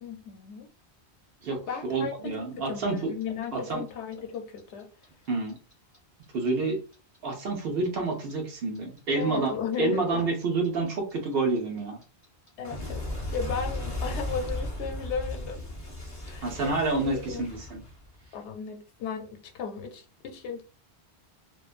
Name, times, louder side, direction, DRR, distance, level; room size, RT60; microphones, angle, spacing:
voice 1, 0.0-0.7 1.7-4.9 9.1-10.3 12.6-13.0 13.3-15.7 16.2-17.0 17.3-17.5 18.3-20.6, left 6 dB, 85° left, 0.9 m, -35 dB
voice 2, 1.4-3.1 3.5-3.9 5.3-5.6 6.3-6.8 7.2-9.5 9.8-12.0 16.4-17.8, right 3 dB, 65° right, 0.9 m, -28 dB
Clock, 3.0-6.0 6.2-9.2 9.5-18.3, left 1 dB, 20° left, 0.7 m, -36 dB
2.4 x 2.2 x 2.4 m
omnidirectional pair, 1.1 m